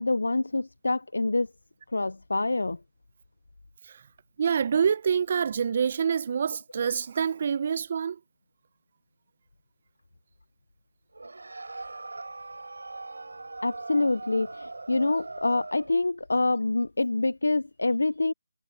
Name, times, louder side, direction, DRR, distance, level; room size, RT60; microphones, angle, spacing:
voice 1, 0.0-1.5 1.9-2.8 13.6-18.3, left 2 dB, 85° left, 0.4 m, -26 dB
voice 2, 4.4-8.2, right 7 dB, 45° right, 0.7 m, -26 dB
sound 1, 11.1-16.0, right 3 dB, 80° right, 3.9 m, -40 dB
figure-of-eight pair, 160°, 0 cm